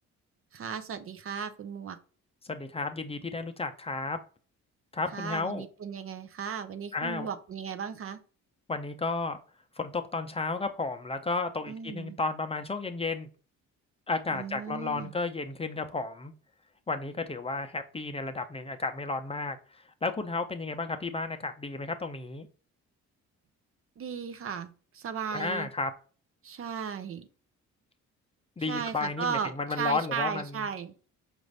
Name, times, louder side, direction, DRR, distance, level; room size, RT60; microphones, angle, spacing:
voice 1, 0.5-2.0 5.1-8.2 11.7-12.2 14.3-15.1 24.0-25.7 26.4-27.3 28.7-30.9, right 7 dB, 45° right, 10 dB, 0.6 m, -36 dB
voice 2, 2.4-4.2 4.9-5.6 6.9-7.3 8.7-9.4 9.8-13.3 14.1-16.3 16.9-22.5 25.3-25.9 28.6-30.7, left 3 dB, 20° left, 6 dB, 0.5 m, -33 dB
5.1 x 2.5 x 3.2 m, 0.38 s
cardioid pair, 90°, 30 cm